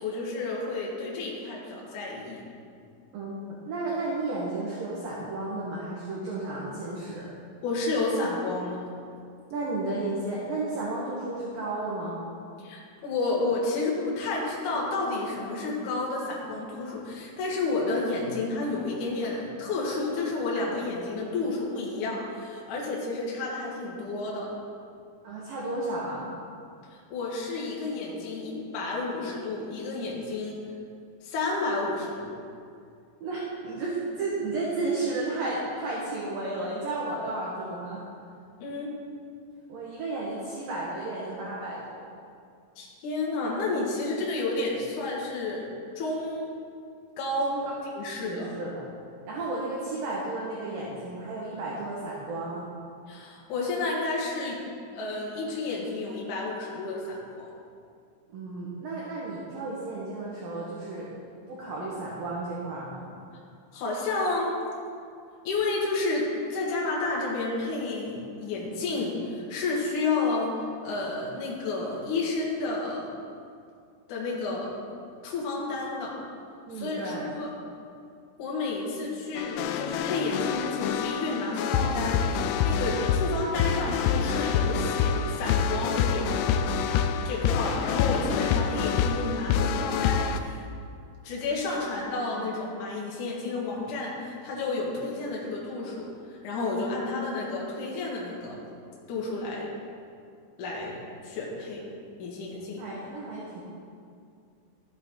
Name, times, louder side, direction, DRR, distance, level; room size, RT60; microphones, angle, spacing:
voice 1, 0.0-2.4 7.6-8.9 12.6-24.5 27.1-30.6 31.2-32.3 38.6-38.9 42.8-45.7 46.0-46.5 47.2-47.5 48.0-48.5 53.1-54.6 54.9-57.5 63.7-64.5 65.4-70.5 70.8-73.1 74.1-74.7 75.2-76.2 76.7-77.5 78.4-86.7 87.2-90.7 91.2-96.1 96.4-98.6 99.1-99.7 100.6-101.0 101.2-101.8 102.2-102.8, left 3 dB, 55° left, -4 dB, 2.4 m, -31 dB
voice 2, 3.1-7.3 9.5-12.2 25.2-26.3 33.2-38.0 39.7-42.1 47.4-47.6 48.1-48.9 49.2-52.6 58.3-61.1 61.5-63.1 76.7-77.3 102.8-103.6, right 2 dB, 65° right, -5 dB, 2.3 m, -33 dB
sound 1, 79.4-90.4, left 7 dB, 90° left, 3.1 m, -27 dB
13.0 x 7.9 x 3.9 m, 2.4 s
omnidirectional pair, 5.6 m